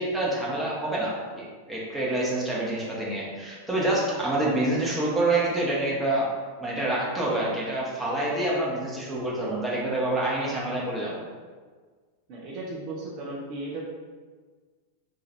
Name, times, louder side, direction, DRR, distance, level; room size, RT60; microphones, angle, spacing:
voice 1, 0.0-6.3 6.6-11.2, right 1 dB, 10° right, -6 dB, 0.8 m, -27 dB
voice 2, 12.3-13.8, right 2 dB, 40° right, -5 dB, 0.5 m, -35 dB
2.7 x 2.4 x 3.1 m, 1.5 s
figure-of-eight pair, 90°, 0 cm